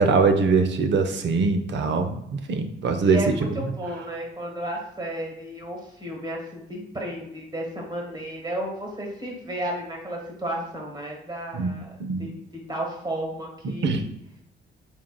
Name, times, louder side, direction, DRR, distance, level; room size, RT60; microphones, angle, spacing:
voice 1, 0.0-3.2 6.7-6.9 11.5-11.7 12.0-12.3 13.8-14.1, right 4 dB, 65° right, 7 dB, 0.6 m, -22 dB
voice 2, 3.0-11.9 12.2-12.3 12.7-14.0, right 1 dB, 20° right, 0 dB, 1.3 m, -33 dB
4.5 x 3.7 x 2.2 m, 0.81 s
cardioid pair, 90°, 20 cm